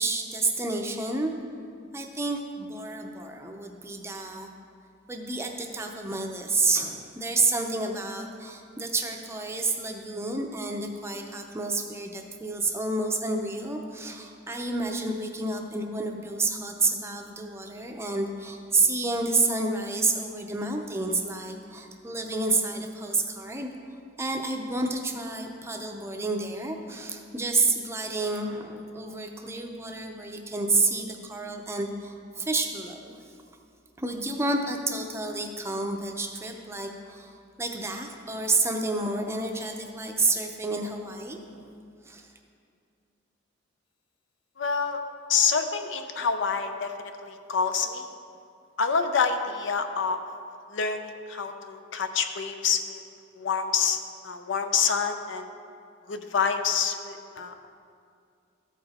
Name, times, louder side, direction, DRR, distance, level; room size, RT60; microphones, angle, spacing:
voice 1, 0.0-1.3 1.9-4.5 5.1-23.7 24.2-33.1 34.0-37.3 37.6-41.7 42.0-42.3, right 3 dB, 15° right, 3 dB, 0.6 m, -29 dB
voice 2, 44.6-45.0 45.3-48.1 48.8-50.2 50.7-53.0 53.4-55.5 56.1-57.7, left 6 dB, 70° left, 7 dB, 0.6 m, -27 dB
13.5 x 4.9 x 4.2 m, 2.4 s
head